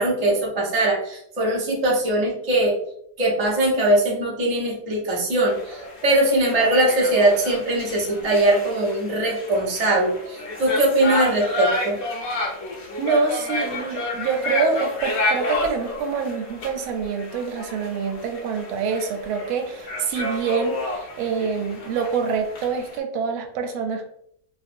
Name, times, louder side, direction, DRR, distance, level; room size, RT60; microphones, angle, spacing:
voice 1, 0.0-2.8 3.2-12.0, right 1 dB, 60° right, -4 dB, 0.4 m, -21 dB
sound 1, 5.5-23.0, left 2 dB, 60° left, 0.9 m, -31 dB
voice 2, 13.0-24.0, right 5 dB, 85° right, 5 dB, 1.5 m, -26 dB
3.4 x 2.7 x 2.5 m, 0.71 s
omnidirectional pair, 2.3 m